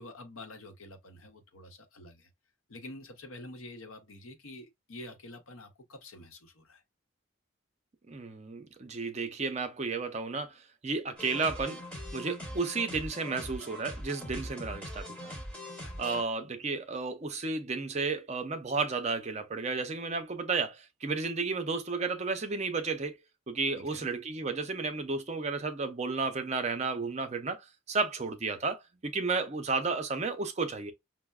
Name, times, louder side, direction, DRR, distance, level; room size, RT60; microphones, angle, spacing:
voice 1, 0.0-2.3 2.7-6.8 15.8-16.2 23.7-24.1, left 2 dB, 85° left, 0.8 m, -48 dB
voice 2, 8.1-11.8 12.1-15.3 16.0-23.2 23.5-30.9, right 4 dB, 30° right, 0.5 m, -33 dB
sound 1, 11.2-16.2, equal, 5° left, 0.7 m, -42 dB
5.4 x 2.0 x 2.3 m
head